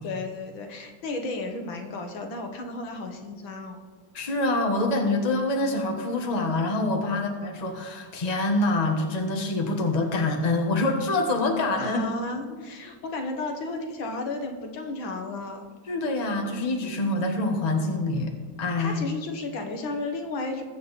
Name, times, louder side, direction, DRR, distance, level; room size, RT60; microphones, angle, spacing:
voice 1, 0.0-3.8 7.1-7.2 11.8-15.7 17.7-17.9 18.8-20.6, left 2 dB, 80° left, 4 dB, 2.1 m, -33 dB
voice 2, 4.1-12.1 12.5-12.6 15.9-18.3 18.6-19.0, left 2 dB, 25° left, 3 dB, 1.3 m, -25 dB
20.5 x 7.4 x 4.2 m, 1.5 s
omnidirectional pair, 2.1 m